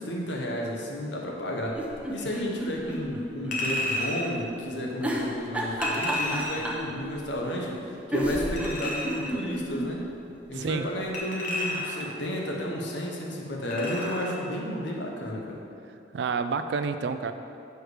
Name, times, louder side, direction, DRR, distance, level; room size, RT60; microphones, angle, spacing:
voice 1, 0.0-1.8 2.1-7.8 8.1-10.0 10.5-15.6, equal, 75° left, -1 dB, 1.0 m, -32 dB
sound 1, 1.7-3.6 3.9-4.0 5.0-6.9 7.8-7.9 8.1-9.9 10.3-10.4 10.6-10.7, right 1 dB, 5° right, 0.7 m, -30 dB
Chink clink, 3.5-4.3 5.8-6.7 8.6-9.3 11.1-12.1 13.7-14.3 14.7-14.8, left 1 dB, 45° left, 1.0 m, -32 dB
voice 2, 10.5-10.9 16.1-17.3, right 5 dB, 70° right, 10 dB, 0.3 m, -29 dB
6.5 x 4.6 x 4.9 m, 2.6 s
head